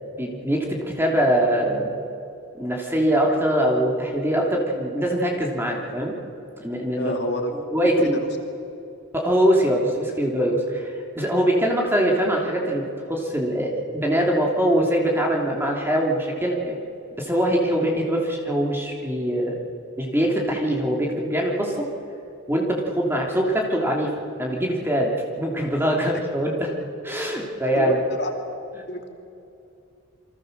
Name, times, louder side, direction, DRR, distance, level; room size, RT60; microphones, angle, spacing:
voice 1, 0.2-1.9 2.6-6.2 6.6-7.1 7.7-8.2 9.1-16.8 17.2-19.6 20.0-21.9 22.5-24.1 24.4-26.7 27.0-28.0, equal, 10° right, 0 dB, 3.1 m, -23 dB
voice 2, 7.0-7.5 8.0-8.3 27.8-28.3 28.9-29.1, left 1 dB, 50° left, 3 dB, 2.5 m, -28 dB
28.5 x 24.5 x 6.8 m, 2.6 s
head